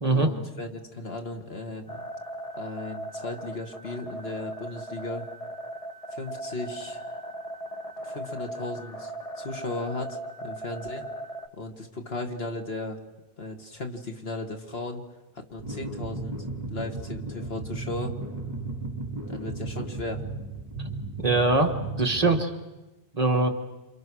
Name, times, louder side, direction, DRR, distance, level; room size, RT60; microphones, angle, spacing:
voice 1, 0.1-2.0 2.6-5.2 6.1-7.0 8.0-9.1 9.4-11.1 11.6-13.0 13.4-15.0 15.3-16.4 16.7-18.2 19.3-20.2, left 2 dB, 70° left, 3 dB, 2.3 m, -36 dB
sound 1, 1.9-11.5, right 1 dB, 35° left, 1.3 m, -38 dB
sound 2, 15.6-22.4, right 2 dB, 15° right, 2.9 m, -35 dB
voice 2, 21.2-22.5 23.1-23.5, right 2 dB, 35° right, 3 dB, 1.8 m, -22 dB
28.0 x 27.0 x 6.4 m, 1.1 s
omnidirectional pair, 1.1 m